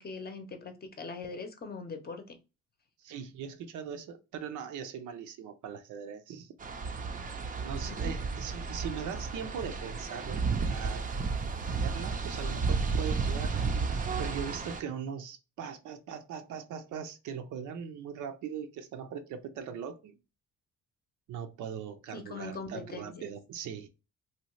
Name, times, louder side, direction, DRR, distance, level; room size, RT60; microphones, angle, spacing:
voice 1, 0.0-2.4 7.9-8.1 22.1-23.2, left 4 dB, 30° left, 0.7 m, -41 dB
voice 2, 3.0-6.5 7.6-11.0 11.8-13.6 14.2-20.2 21.3-23.9, right 7 dB, 80° right, 0.6 m, -40 dB
sound 1, 6.6-14.8, right 4 dB, 30° right, 0.5 m, -32 dB
2.8 x 2.3 x 3.0 m
cardioid pair, 90°, 30 cm